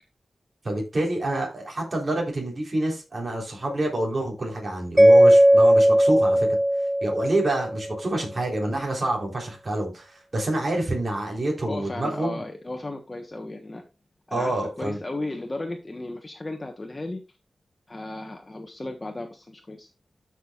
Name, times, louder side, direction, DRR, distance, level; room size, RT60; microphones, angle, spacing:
voice 1, 0.6-6.5 7.0-12.4 14.3-15.0, right 1 dB, 40° right, -1 dB, 4.0 m, -27 dB
Mallet percussion, 5.0-8.0, equal, 10° right, 0.3 m, -17 dB
voice 2, 11.7-13.8 14.3-17.2 17.9-19.9, left 2 dB, 25° left, 3 dB, 1.3 m, -35 dB
13.0 x 6.2 x 2.5 m, 0.27 s
wide cardioid pair, 115°, 0 cm